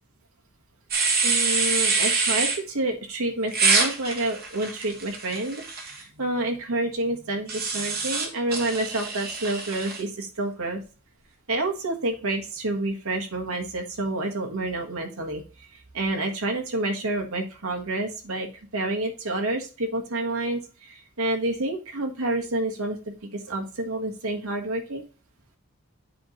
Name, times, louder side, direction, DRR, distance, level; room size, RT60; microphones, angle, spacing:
sound 1, 0.9-2.6 3.5-6.0 7.5-10.0, right 4 dB, 45° right, 1.6 m, -25 dB
voice 1, 1.2-10.8 11.5-15.4 15.9-18.5 18.7-25.0, right 2 dB, 75° right, 2 dB, 1.4 m, -28 dB
8.5 x 3.1 x 5.0 m, 0.34 s
head